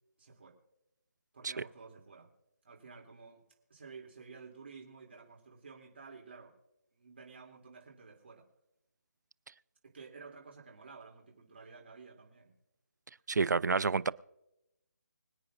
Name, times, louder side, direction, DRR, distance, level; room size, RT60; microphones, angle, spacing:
voice 1, 0.2-0.6 1.3-2.3 2.6-3.4 3.7-6.5 6.9-8.4 9.8-12.5, right 5 dB, 40° right, -1 dB, 2.9 m, -52 dB
voice 2, 13.3-14.1, right 4 dB, 90° right, 19 dB, 0.5 m, -29 dB
25.5 x 8.8 x 2.5 m, 0.90 s
hypercardioid pair, 180°, 9 cm